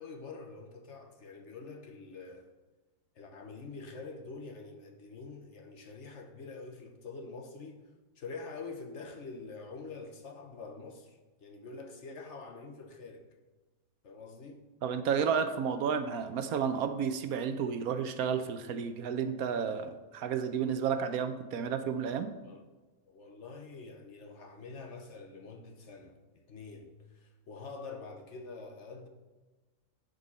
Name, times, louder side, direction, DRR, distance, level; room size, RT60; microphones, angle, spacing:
voice 1, 0.0-2.5 3.2-7.9 8.2-13.3 14.0-14.6 22.4-22.6 23.1-29.1, left 4 dB, 55° left, 1.2 m, -46 dB
voice 2, 14.8-22.3, right 7 dB, 75° right, 1.1 m, -31 dB
10.5 x 5.4 x 4.2 m
omnidirectional pair, 1.6 m